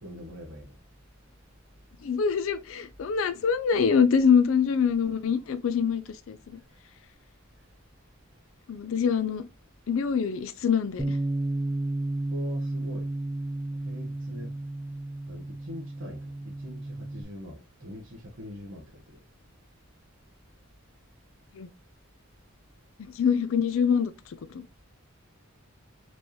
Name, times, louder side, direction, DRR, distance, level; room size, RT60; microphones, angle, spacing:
voice 1, 0.0-0.8 12.3-13.1 13.8-14.5 15.3-19.0, left 1 dB, 60° right, 0.9 m, -43 dB
voice 2, 2.0-6.6 8.7-9.4 9.9-11.2 21.6-21.7 23.2-24.1 24.5-24.6, left 6 dB, 70° left, 0.4 m, -24 dB
Bass guitar, 11.0-17.2, right 2 dB, 5° right, 0.6 m, -32 dB
4.5 x 2.8 x 3.0 m
head